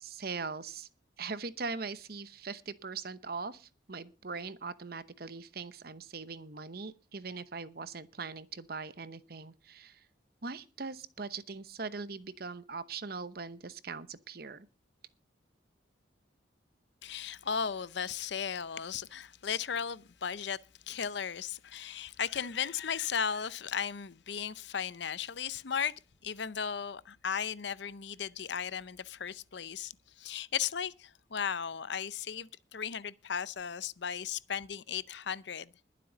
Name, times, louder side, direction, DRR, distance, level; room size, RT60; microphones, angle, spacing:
voice 1, 0.0-0.9 1.2-10.0 10.4-14.7, right 4 dB, 50° right, 0.9 m, -41 dB
voice 2, 17.0-20.6 20.9-25.9 26.2-35.7, left 7 dB, 65° left, 0.6 m, -36 dB
21.5 x 7.6 x 3.9 m
head